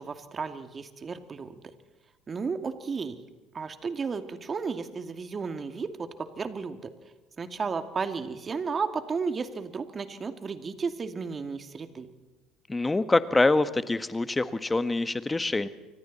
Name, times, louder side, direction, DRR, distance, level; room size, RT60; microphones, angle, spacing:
voice 1, 0.0-1.6 2.3-3.2 3.5-6.9 7.4-12.1, right 5 dB, 30° right, 8 dB, 2.4 m, -33 dB
voice 2, 12.7-15.7, left 2 dB, 15° left, 12 dB, 1.4 m, -25 dB
28.5 x 25.0 x 4.3 m, 1.1 s
hypercardioid pair, 70°, 0 cm